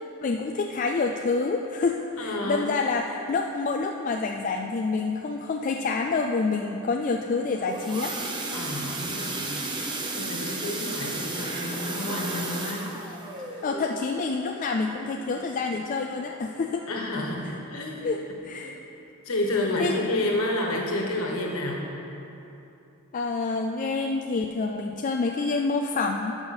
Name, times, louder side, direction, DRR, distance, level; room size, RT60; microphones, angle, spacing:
voice 1, 0.2-8.2 13.6-16.9 18.0-18.8 19.8-19.9 23.1-26.4, left 4 dB, 35° left, 3 dB, 0.3 m, -27 dB
voice 2, 2.2-2.7 8.5-13.2 13.5-13.7 16.9-18.1 18.6-18.7 19.2-21.8, left 1 dB, 65° left, -1 dB, 1.4 m, -30 dB
sound 1, 7.3-16.0 16.4-16.7 17.0-17.1 17.5-17.6, right 2 dB, 20° right, 0.7 m, -34 dB
13.0 x 5.7 x 4.3 m, 2.9 s
head